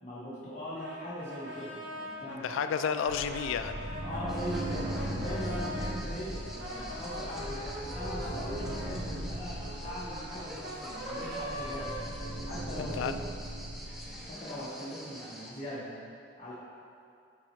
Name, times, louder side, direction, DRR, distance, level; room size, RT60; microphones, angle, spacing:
voice 1, 0.0-2.5 4.0-13.2 14.2-15.9 16.4-16.5, equal, 35° left, -10 dB, 1.0 m, -40 dB
Brass instrument, 0.8-6.0 6.4-12.7, equal, 65° right, 1.2 m, -42 dB
voice 2, 2.3-3.9 12.8-13.1, left 7 dB, 90° left, 10 dB, 0.3 m, -32 dB
sound 1, 3.1-14.3, right 1 dB, 45° right, 0.7 m, -39 dB
sound 2, 4.3-15.5, equal, ahead, 0.5 m, -47 dB
9.2 x 4.1 x 3.1 m, 2.4 s
head